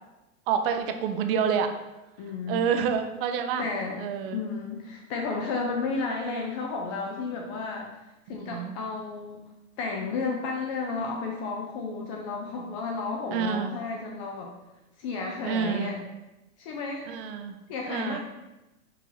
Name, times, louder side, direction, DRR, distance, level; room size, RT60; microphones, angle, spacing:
voice 1, 0.5-1.7 2.5-3.7 4.0-4.4 8.3-8.8 13.3-13.7 15.4-16.0 17.1-17.6 17.9-18.2, right 7 dB, 45° right, 7 dB, 0.5 m, -28 dB
voice 2, 2.2-2.6 3.6-4.0 4.3-8.0 8.3-9.4 9.8-14.5 15.0-16.0 16.6-17.1 17.7-18.2, left 4 dB, 25° left, 0 dB, 0.3 m, -32 dB
4.7 x 2.8 x 3.9 m, 1.0 s
hypercardioid pair, 115°, 42 cm